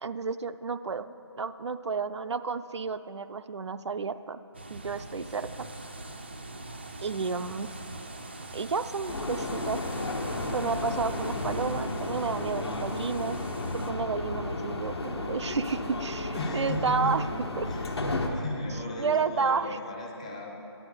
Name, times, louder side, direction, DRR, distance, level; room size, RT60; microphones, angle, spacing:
voice 1, 0.0-4.4 4.7-5.7 7.0-7.7 8.5-9.8 10.5-13.4 13.7-17.2 17.6-17.7 19.0-19.7, right 5 dB, 80° right, 11 dB, 0.4 m, -31 dB
sound 1, 4.5-13.9, right 2 dB, 25° right, 0.4 m, -42 dB
sound 2, 9.1-18.3, left 2 dB, 65° left, 1.3 m, -33 dB
voice 2, 16.3-17.3 17.7-17.9 18.3-20.5, left 1 dB, 15° left, 0 dB, 0.6 m, -35 dB
10.5 x 8.7 x 4.9 m, 2.9 s
figure-of-eight pair, 170°, 14 cm